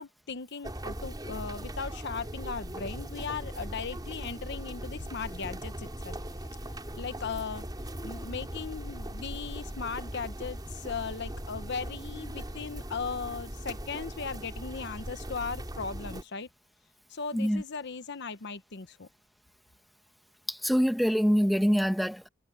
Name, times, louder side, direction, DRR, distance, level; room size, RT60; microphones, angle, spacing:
voice 1, 0.0-6.2 7.0-7.6 8.0-16.5 17.1-19.1, left 5 dB, 60° left, 1.0 m, -37 dB
sound 1, 0.6-16.2, right 1 dB, 20° right, 4.6 m, -39 dB
voice 2, 17.3-17.6 20.5-22.3, equal, ahead, 1.4 m, -25 dB
head